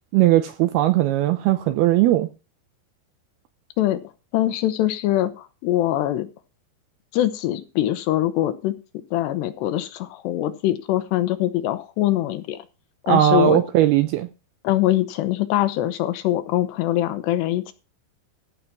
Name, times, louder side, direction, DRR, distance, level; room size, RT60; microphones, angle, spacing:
voice 1, 0.1-2.3 13.1-14.3, right 13 dB, 80° right, 2.3 m, -18 dB
voice 2, 4.3-6.3 7.1-8.7 9.1-12.6 13.1-13.6 14.6-17.7, left 14 dB, 75° left, 2.9 m, -23 dB
15.0 x 5.7 x 6.0 m
omnidirectional pair, 5.2 m